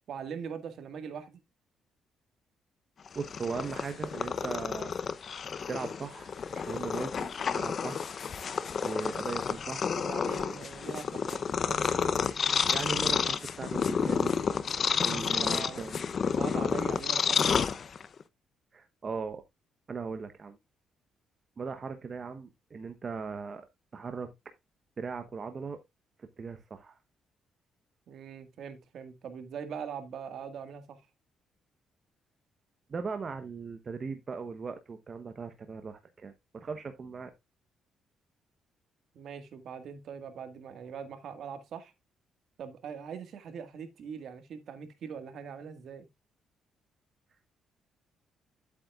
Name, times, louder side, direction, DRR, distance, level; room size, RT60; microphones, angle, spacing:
voice 1, 0.1-1.4 10.0-11.8 15.1-15.8 16.3-17.6 28.1-31.0 39.1-41.9 42.6-46.1, right 7 dB, 65° right, 1.8 m, -42 dB
Purr, 3.1-18.2, left 6 dB, 50° left, 0.7 m, -30 dB
voice 2, 3.1-4.9 5.7-8.2 8.8-10.0 12.7-14.4 15.0-16.0 18.7-19.4 19.9-20.6 21.6-23.6 23.9-24.3 25.0-25.8 26.2-27.0 32.9-37.3, right 5 dB, 40° right, 1.0 m, -38 dB
10.5 x 8.4 x 2.4 m
cardioid pair, 90°, 0 cm